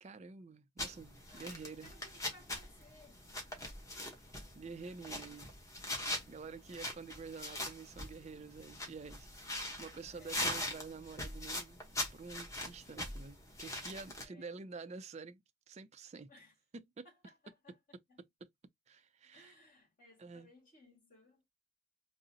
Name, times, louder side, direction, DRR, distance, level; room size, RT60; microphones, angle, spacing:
voice 1, 0.0-1.9 4.5-5.5 6.3-11.8 12.1-16.3 16.7-17.1 18.2-18.5 18.9-19.6 20.2-20.5, right 4 dB, 35° right, 0.4 m, -49 dB
sound 1, 0.8-14.2, left 1 dB, 15° left, 1.0 m, -42 dB
voice 2, 1.3-3.2 4.6-5.5 6.7-6.9 10.1-10.5 14.2-14.5 16.3-16.5 17.0-18.2 19.3-21.4, left 1 dB, 45° left, 1.8 m, -62 dB
3.7 x 2.0 x 2.7 m
head